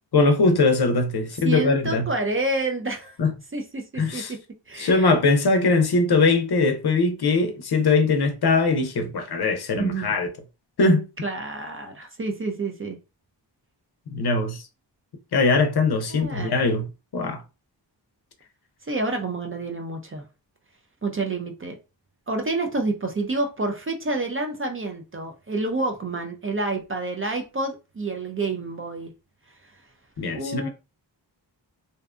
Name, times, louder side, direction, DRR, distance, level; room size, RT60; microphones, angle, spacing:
voice 1, 0.1-2.1 3.2-3.3 4.0-4.3 4.8-10.3 10.8-11.0 14.1-14.6 15.3-17.4 30.2-30.7, left 3 dB, 60° left, 0.6 m, -21 dB
voice 2, 1.4-3.2 3.5-4.2 4.7-5.1 9.7-10.1 11.2-13.0 16.1-16.5 18.8-20.2 21.0-21.8 22.3-29.1 30.3-30.7, right 2 dB, 30° right, 0.4 m, -28 dB
2.6 x 2.2 x 2.4 m
wide cardioid pair, 105°, 44 cm